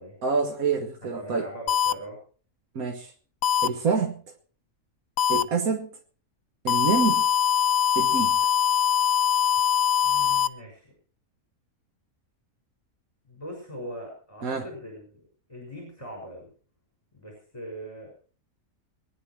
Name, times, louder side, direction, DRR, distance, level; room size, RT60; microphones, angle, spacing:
voice 1, 0.2-1.5 2.8-3.1 3.6-4.2 5.3-5.9 6.6-7.3 8.0-8.4 14.4-14.7, right 5 dB, 75° right, 1.8 m, -26 dB
voice 2, 1.0-2.2 10.0-11.0 13.3-16.5 17.1-18.1, equal, 20° left, 6.0 m, -41 dB
sound 1, 1.7-1.9 3.4-3.7 5.2-5.4 6.7-10.5, left 9 dB, 70° left, 1.4 m, -22 dB
23.0 x 10.5 x 4.7 m
omnidirectional pair, 1.5 m